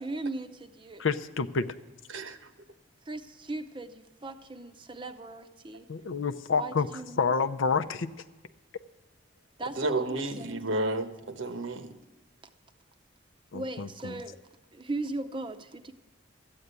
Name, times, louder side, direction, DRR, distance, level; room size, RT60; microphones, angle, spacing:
voice 1, 0.0-1.0 3.1-5.9 6.6-7.3 9.6-10.6 13.5-14.4 14.7-15.9, right 2 dB, 25° right, 0.6 m, -38 dB
voice 2, 1.0-1.7 5.9-6.9 7.2-8.1 13.5-14.2, left 5 dB, 80° left, 0.6 m, -28 dB
voice 3, 2.1-2.5 9.7-11.9, right 2 dB, 80° right, 1.0 m, -31 dB
13.5 x 8.8 x 8.1 m
head